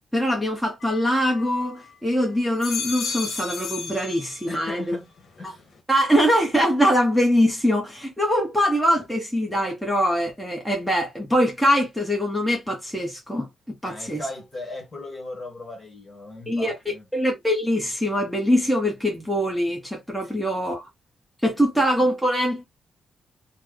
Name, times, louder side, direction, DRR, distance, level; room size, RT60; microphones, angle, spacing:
voice 1, 0.1-4.9 5.4-5.5 5.9-13.5 13.8-14.2 16.5-20.9 21.4-22.6, equal, ahead, 0.9 m, -23 dB
sound 1, 0.8-1.9 2.4-4.8 5.2-5.8, left 5 dB, 60° left, 0.9 m, -34 dB
voice 2, 4.5-5.1 5.4-5.6 13.8-17.1 20.2-20.4 21.6-21.8, left 2 dB, 30° left, 1.3 m, -37 dB
3.1 x 2.1 x 3.6 m
cardioid pair, 130°, 0 cm